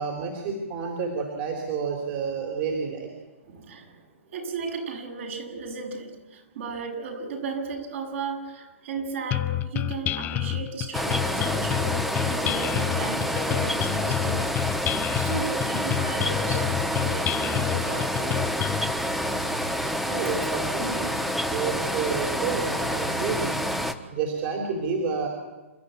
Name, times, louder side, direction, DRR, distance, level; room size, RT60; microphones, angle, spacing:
voice 1, 0.0-3.1 12.3-12.4 20.1-21.2 21.5-23.6 24.1-25.3, right 5 dB, 40° right, 1 dB, 3.8 m, -30 dB
voice 2, 3.4-4.0 4.3-14.6 14.9-18.4 19.8-20.0, right 4 dB, 60° right, 2 dB, 6.9 m, -35 dB
sound 1, 9.3-18.9, left 14 dB, 25° left, 0.6 m, -29 dB
sound 2, 10.9-23.9, equal, ahead, 1.1 m, -28 dB
28.5 x 12.5 x 9.3 m, 1.2 s
hypercardioid pair, 135°, 7 cm